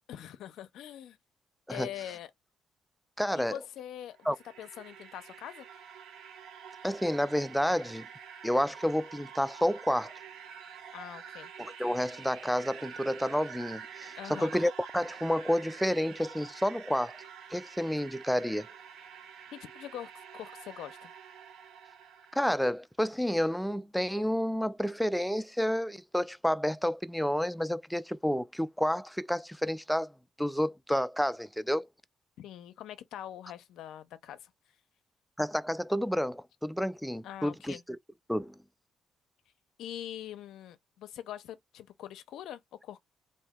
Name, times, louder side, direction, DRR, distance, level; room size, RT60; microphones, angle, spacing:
voice 1, 0.1-1.2 1.7-2.3 3.4-4.2 4.6-5.7 10.9-11.5 14.2-14.5 19.5-21.1 32.4-34.5 37.2-37.8 39.8-43.0, left 11 dB, 85° left, 0.5 m, -43 dB
voice 2, 3.2-3.6 4.3-4.4 6.8-8.1 8.4-10.1 11.6-17.2 17.5-18.7 22.4-30.1 30.4-31.9 35.4-37.8 38.3-38.5, equal, ahead, 0.3 m, -30 dB
sound 1, 4.0-22.7, right 7 dB, 85° right, 0.7 m, -48 dB
2.8 x 2.6 x 3.5 m
cardioid pair, 90°, 0 cm